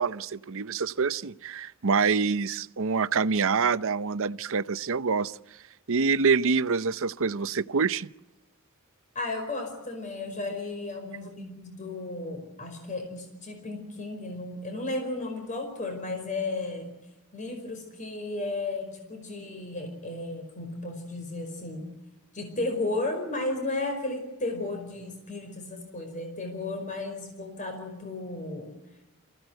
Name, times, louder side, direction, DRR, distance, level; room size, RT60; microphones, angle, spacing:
voice 1, 0.0-5.4 5.9-8.1, right 5 dB, 65° right, 14 dB, 0.8 m, -26 dB
voice 2, 9.1-17.0 17.3-21.9 22.3-28.7, left 2 dB, 35° left, 4 dB, 5.1 m, -34 dB
28.0 x 16.0 x 8.0 m, 0.97 s
head